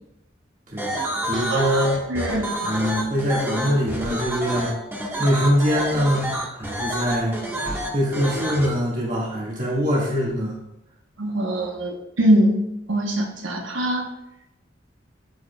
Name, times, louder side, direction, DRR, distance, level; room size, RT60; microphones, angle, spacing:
voice 1, 0.7-1.0 1.3-2.0 2.6-4.7 5.2-7.4 7.9-10.6, equal, 40° right, -5 dB, 1.9 m, -23 dB
sound 1, 0.8-8.7, equal, 10° right, 1.4 m, -28 dB
voice 2, 1.3-1.8 2.1-2.5 11.2-12.6 12.9-14.1, right 1 dB, 85° right, 3 dB, 1.1 m, -22 dB
13.5 x 5.1 x 2.3 m, 0.87 s
head